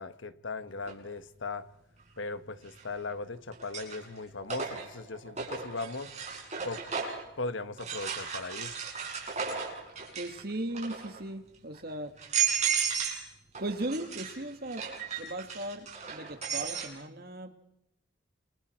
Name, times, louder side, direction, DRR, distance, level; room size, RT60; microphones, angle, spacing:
voice 1, 0.0-1.7 2.2-6.1 6.6-6.8 7.4-8.7, left 3 dB, 75° left, 1.3 m, -38 dB
sound 1, 0.9-1.0 2.7-3.1 3.5-7.3 7.8-10.4 10.7-11.2 11.7-11.8 12.2-13.3 13.5-16.9, right 7 dB, 35° right, 6.9 m, -34 dB
voice 2, 10.2-12.1 13.6-14.9 15.2-17.6, right 1 dB, 50° right, 2.1 m, -37 dB
28.5 x 28.0 x 4.6 m
head